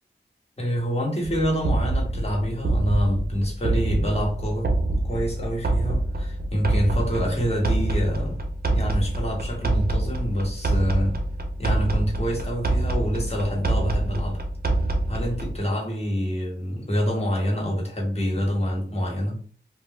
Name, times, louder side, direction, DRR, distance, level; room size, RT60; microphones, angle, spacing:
voice 1, 0.6-4.7 5.0-8.4 8.7-11.2 11.6-14.4 15.1-19.4, equal, 30° left, 1.2 m, -26 dB
sound 1, 1.2-15.6, right 2 dB, 50° right, 0.6 m, -26 dB
2.4 x 2.2 x 3.5 m
wide cardioid pair, 45°, 20 cm